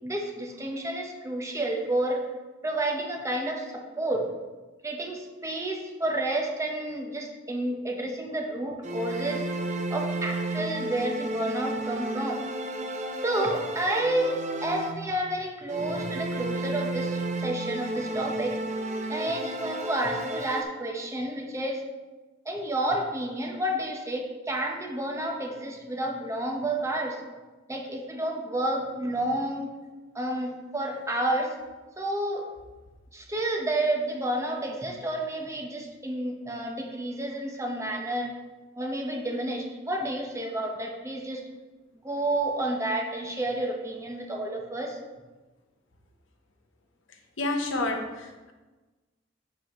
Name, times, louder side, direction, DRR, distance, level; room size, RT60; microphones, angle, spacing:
voice 1, 0.0-2.2 2.6-4.3 4.8-9.5 9.9-12.5 13.2-18.6 19.1-21.8 22.4-27.2 27.7-29.7 30.1-31.5 32.0-32.5 33.1-38.3 38.8-41.4 42.0-45.0, right 1 dB, 15° right, 1 dB, 1.0 m, -30 dB
sound 1, 8.8-15.3 15.7-20.6, right 2 dB, 40° right, 0.6 m, -32 dB
voice 2, 47.4-48.5, left 2 dB, 85° left, 3 dB, 1.0 m, -29 dB
7.7 x 7.7 x 3.0 m, 1.2 s
head